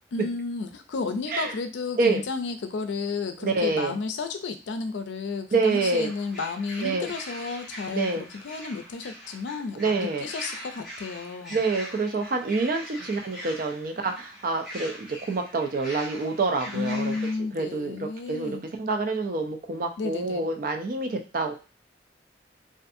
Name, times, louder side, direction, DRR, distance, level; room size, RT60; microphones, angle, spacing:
voice 1, 0.1-11.6 16.7-18.7 20.0-20.5, left 4 dB, 90° left, 7 dB, 0.4 m, -32 dB
voice 2, 3.4-4.0 5.5-6.1 6.8-7.1 7.9-8.2 9.8-10.3 11.5-17.2 17.5-21.5, right 3 dB, 50° right, 5 dB, 0.4 m, -27 dB
sound 1, 5.7-17.4, equal, ahead, 0.8 m, -42 dB
2.5 x 2.5 x 2.6 m, 0.33 s
head